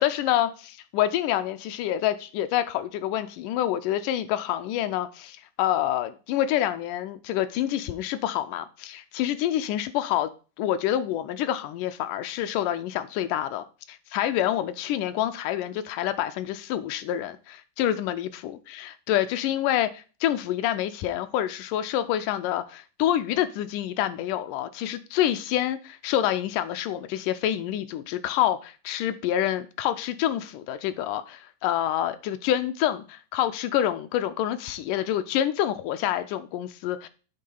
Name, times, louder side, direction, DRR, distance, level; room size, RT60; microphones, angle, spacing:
voice 1, 0.0-10.3 10.6-37.1, left 12 dB, 80° left, 2.0 m, -27 dB
8.5 x 3.7 x 5.3 m
omnidirectional pair, 3.9 m